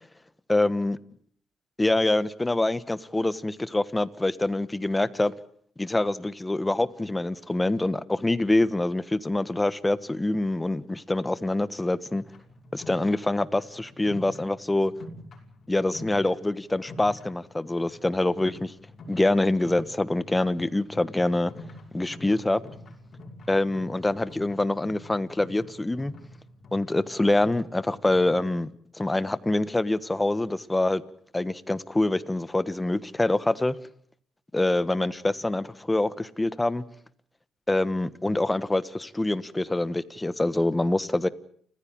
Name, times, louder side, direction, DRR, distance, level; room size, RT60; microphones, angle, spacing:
voice 1, 0.5-1.0 1.8-5.3 5.8-12.2 12.7-14.9 15.7-18.7 19.1-21.5 21.9-22.6 23.5-26.1 26.7-28.7 29.0-31.0 31.3-33.7 34.5-36.8 37.7-41.3, left 2 dB, 15° left, 1.3 m, -25 dB
sound 1, 12.1-28.7, left 1 dB, 50° left, 5.8 m, -47 dB
29.5 x 15.5 x 8.8 m
cardioid pair, 90°, 0 cm